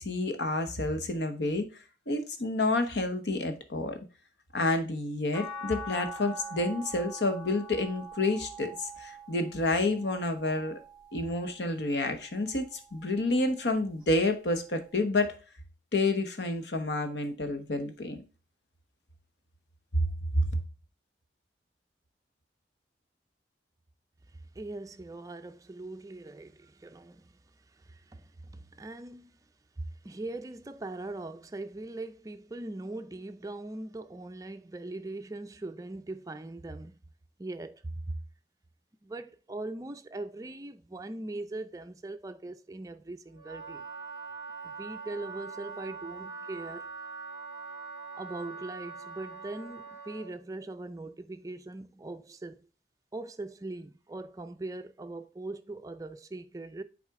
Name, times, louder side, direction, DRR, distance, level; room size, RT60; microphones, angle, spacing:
voice 1, 0.0-1.7 2.1-4.0 4.5-10.8 11.1-15.4 15.9-18.2 19.9-20.0 20.3-20.6, left 2 dB, 75° left, 1.0 m, -29 dB
sound 1, 5.3-11.6 12.2-13.6 15.0-15.1, right 1 dB, 20° left, 2.7 m, -44 dB
voice 2, 24.6-27.3 27.9-28.2 28.5-29.3 29.8-36.9 37.4-38.2 39.0-43.8 44.6-46.9 48.1-52.7 53.1-56.8, right 2 dB, 20° right, 0.4 m, -40 dB
Wind instrument woodwind instrument, 43.3-50.4, right 4 dB, 55° left, 1.9 m, -43 dB
7.5 x 4.1 x 3.6 m
head